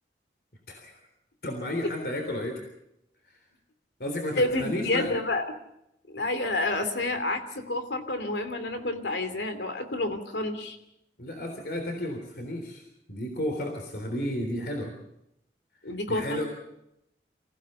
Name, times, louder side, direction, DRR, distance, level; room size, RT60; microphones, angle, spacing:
voice 1, 0.7-1.0 1.4-2.7 4.0-5.1 11.2-15.0 16.1-16.5, left 1 dB, 60° left, 3 dB, 3.5 m, -32 dB
voice 2, 4.4-5.4 6.1-10.8 15.8-16.4, left 2 dB, 85° left, 8 dB, 2.8 m, -29 dB
26.5 x 16.0 x 6.8 m, 0.84 s
head